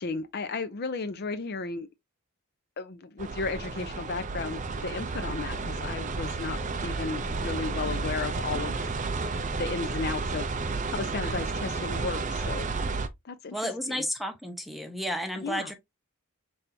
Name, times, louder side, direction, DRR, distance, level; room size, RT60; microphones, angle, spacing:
voice 1, 0.0-1.9 2.8-8.9 9.6-12.7 13.2-14.1 15.4-15.7, left 4 dB, 45° left, 0.5 m, -34 dB
sound 1, 3.2-13.1, right 3 dB, 35° right, 0.5 m, -32 dB
voice 2, 13.5-15.7, equal, ahead, 0.8 m, -32 dB
5.4 x 3.4 x 2.7 m
head